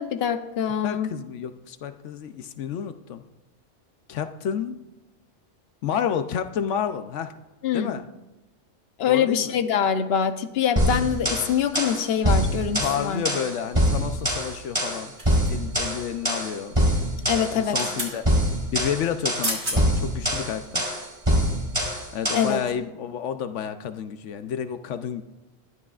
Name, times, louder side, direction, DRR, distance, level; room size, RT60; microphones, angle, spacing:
voice 1, 0.0-1.1 7.6-8.0 9.0-13.2 17.3-17.8 22.3-22.6, left 8 dB, 60° left, 8 dB, 1.0 m, -24 dB
voice 2, 0.8-3.2 4.1-4.8 5.8-7.3 7.7-8.1 9.1-9.5 12.8-15.1 15.5-16.8 17.5-18.3 18.7-20.9 22.1-25.2, left 8 dB, 85° left, 9 dB, 1.0 m, -30 dB
sound 1, 10.8-22.6, equal, 25° right, 3.7 m, -24 dB
sound 2, 15.2-15.8 17.5-18.2 19.1-19.2 19.4-19.8 20.3-20.5, right 1 dB, 70° right, 3.8 m, -31 dB
20.5 x 12.5 x 2.4 m, 0.98 s
omnidirectional pair, 1.2 m